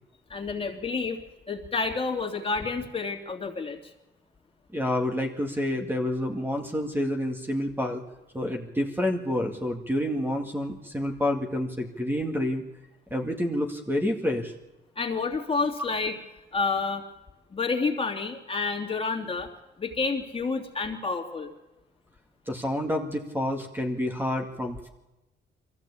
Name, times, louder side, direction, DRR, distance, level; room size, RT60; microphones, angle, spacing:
voice 1, 0.3-3.8 15.0-16.2 16.5-17.0 17.5-19.5 19.8-21.5, left 4 dB, 30° left, 2 dB, 2.9 m, -29 dB
voice 2, 4.7-8.0 8.3-12.6 13.1-14.5 22.5-24.9, left 1 dB, 10° right, 2 dB, 2.1 m, -28 dB
22.5 x 15.0 x 8.5 m, 1.0 s
cardioid pair, 90°, 20 cm